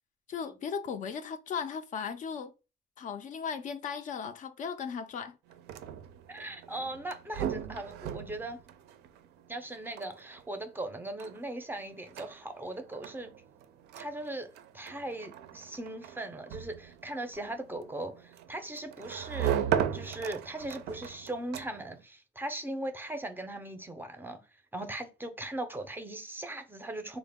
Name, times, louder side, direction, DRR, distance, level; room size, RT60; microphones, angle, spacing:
voice 1, 0.3-2.5 3.0-5.4, left 6 dB, 50° left, 0.4 m, -37 dB
sound 1, 5.5-22.0, right 9 dB, 80° right, 0.4 m, -38 dB
voice 2, 6.3-8.6 9.5-13.3 14.0-19.7 19.9-24.4 24.7-27.2, right 1 dB, 10° right, 0.5 m, -39 dB
3.6 x 2.0 x 3.4 m
cardioid pair, 110°, 17 cm